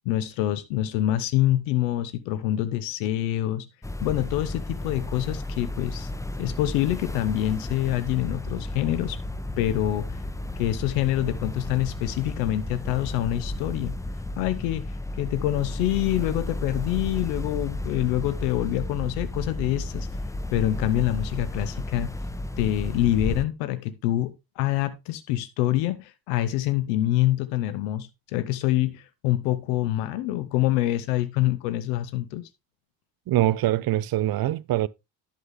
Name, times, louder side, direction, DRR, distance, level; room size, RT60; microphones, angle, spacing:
voice 1, 0.0-3.7 4.0-6.1 6.4-9.2 9.6-10.2 10.6-13.9 14.4-20.1 20.5-22.1 22.6-32.5, left 14 dB, 70° left, 1.0 m, -26 dB
sound 1, 3.8-23.5, left 1 dB, 5° left, 0.8 m, -33 dB
voice 2, 33.3-34.9, right 14 dB, 45° right, 0.7 m, -23 dB
11.0 x 7.2 x 3.4 m
hypercardioid pair, 50°, 50 cm